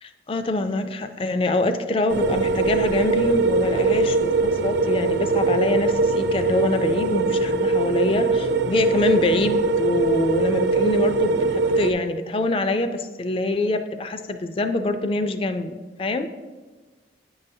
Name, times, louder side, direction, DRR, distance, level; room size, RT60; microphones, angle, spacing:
voice 1, 0.0-16.3, left 2 dB, 30° left, 8 dB, 0.3 m, -25 dB
sound 1, 2.1-11.9, right 3 dB, 65° right, 0.4 m, -22 dB
9.0 x 5.4 x 2.7 m, 1.4 s
head